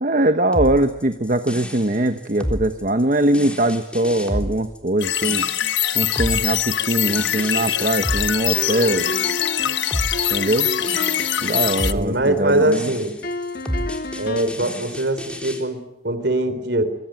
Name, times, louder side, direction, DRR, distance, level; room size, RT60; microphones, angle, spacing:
voice 1, 0.0-5.5 5.9-9.0 10.3-10.7 11.4-12.9, right 1 dB, 45° right, 8 dB, 1.1 m, -21 dB
sound 1, 0.5-15.6, equal, 5° left, 3.6 m, -30 dB
sound 2, 5.0-11.9, left 11 dB, 75° left, 1.2 m, -23 dB
sound 3, 8.6-11.6 13.2-14.7, left 1 dB, 50° left, 1.7 m, -30 dB
voice 2, 11.9-13.2 14.2-17.0, right 1 dB, 60° right, 12 dB, 3.9 m, -22 dB
24.5 x 24.5 x 9.2 m, 0.87 s
head